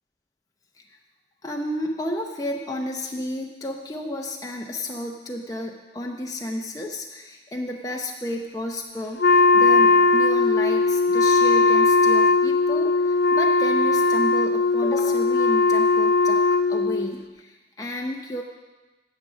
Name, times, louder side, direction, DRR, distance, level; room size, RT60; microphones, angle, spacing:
voice 1, 1.4-16.4 16.7-18.4, left 1 dB, 20° left, 0 dB, 0.7 m, -32 dB
Wind instrument woodwind instrument, 9.2-17.1, left 3 dB, 60° left, 0.5 m, -19 dB
10.5 x 7.6 x 6.2 m, 1.2 s
head